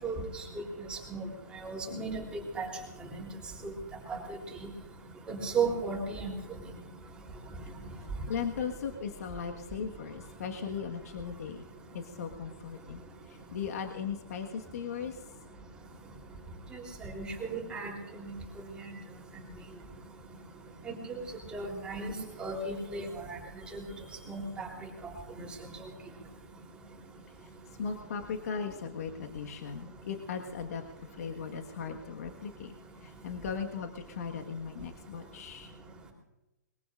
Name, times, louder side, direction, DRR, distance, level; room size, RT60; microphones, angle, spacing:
voice 1, 0.0-0.6 0.9-1.2 1.6-2.7 3.6-3.7 4.1-4.2 5.3-6.3 16.7-17.9 20.9-21.2 21.5-22.1 22.4-23.4 23.7-23.8 24.3-24.7, right 4 dB, 10° right, -1 dB, 3.6 m, -35 dB
voice 2, 8.3-13.0 13.3-15.2 27.8-30.8 31.2-32.7 33.0-35.7, left 6 dB, 55° left, 3 dB, 1.6 m, -38 dB
22.5 x 21.5 x 2.5 m, 1.0 s
hypercardioid pair, 145°, 10 cm